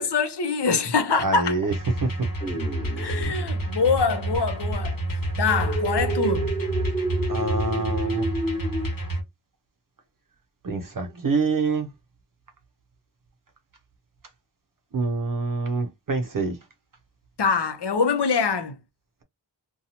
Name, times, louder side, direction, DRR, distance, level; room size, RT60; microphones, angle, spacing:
voice 1, 0.0-1.5 3.0-5.0 5.4-6.5 17.4-18.8, left 5 dB, 65° left, 0.7 m, -24 dB
voice 2, 1.2-1.7 2.0-2.3 3.0-3.3 7.3-8.3 10.6-11.9 14.9-16.6, right 3 dB, 50° right, 0.6 m, -26 dB
sound 1, 1.7-9.2, right 1 dB, 50° left, 1.3 m, -29 dB
sound 2, 2.4-3.6 5.5-8.9, right 2 dB, 15° left, 1.0 m, -30 dB
2.7 x 2.3 x 2.7 m
wide cardioid pair, 45°, 44 cm